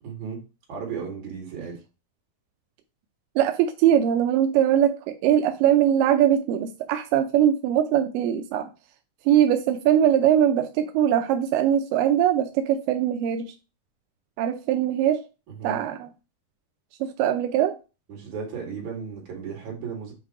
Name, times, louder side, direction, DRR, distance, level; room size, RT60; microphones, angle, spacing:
voice 1, 0.0-0.4 0.7-1.8 15.5-15.8 18.1-20.1, right 6 dB, 55° right, 3.1 m, -35 dB
voice 2, 3.4-8.7 9.3-13.5 14.4-15.2 15.6-16.1 17.0-17.8, right 10 dB, 85° right, 2.0 m, -21 dB
7.2 x 2.8 x 4.8 m
omnidirectional pair, 4.4 m